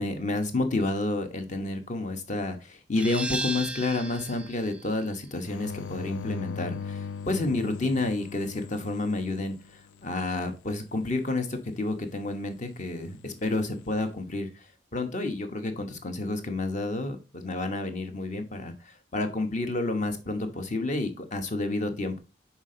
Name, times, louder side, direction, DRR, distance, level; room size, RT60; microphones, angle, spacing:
voice 1, 0.0-14.6 14.9-22.2, left 2 dB, 40° left, 6 dB, 1.0 m, -30 dB
sound 1, 3.0-8.4, right 2 dB, 5° right, 0.4 m, -38 dB
sound 2, 5.4-10.1 13.3-13.9, left 6 dB, 70° left, 0.3 m, -39 dB
6.1 x 4.1 x 3.8 m, 0.31 s
head